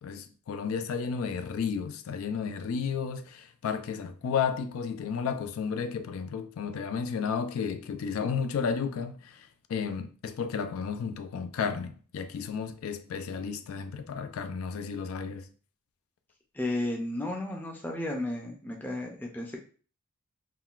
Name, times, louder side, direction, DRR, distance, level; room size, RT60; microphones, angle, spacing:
voice 1, 0.0-15.5, left 6 dB, 85° left, 0.3 m, -33 dB
voice 2, 16.5-19.6, left 1 dB, 10° left, 0.4 m, -33 dB
3.7 x 2.2 x 2.4 m
head